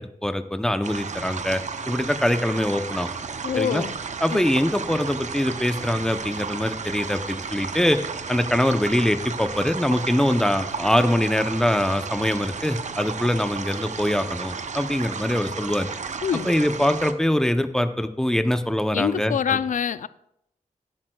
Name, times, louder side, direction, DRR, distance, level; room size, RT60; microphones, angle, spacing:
voice 1, 0.0-3.1 3.6-3.8 4.2-8.0 8.3-15.9 16.4-19.6, left 1 dB, 5° left, 0.6 m, -23 dB
sound 1, 0.8-17.1, right 5 dB, 60° right, 0.6 m, -33 dB
voice 2, 3.4-3.9 4.3-4.5 16.2-16.5 18.9-20.1, left 8 dB, 65° left, 0.4 m, -25 dB
16.0 x 8.8 x 2.3 m
wide cardioid pair, 110°, 14 cm